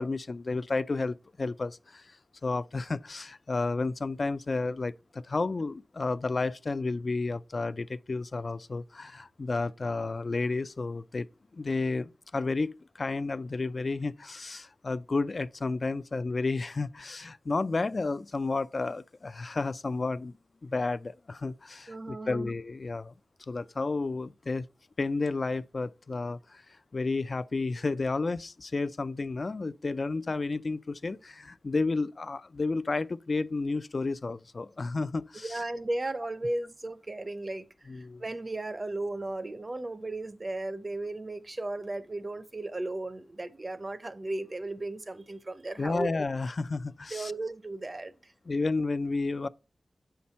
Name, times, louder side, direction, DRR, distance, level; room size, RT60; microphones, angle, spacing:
voice 1, 0.0-2.2 2.4-11.3 11.5-20.3 20.6-23.1 23.5-24.7 25.0-26.6 26.9-35.6 37.9-38.2 45.8-47.3 48.5-49.5, left 3 dB, 50° left, 0.3 m, -31 dB
voice 2, 21.9-22.5 35.4-46.2 47.1-48.3, right 2 dB, 35° right, 0.6 m, -35 dB
7.5 x 5.7 x 4.1 m
wide cardioid pair, 90°, 0 cm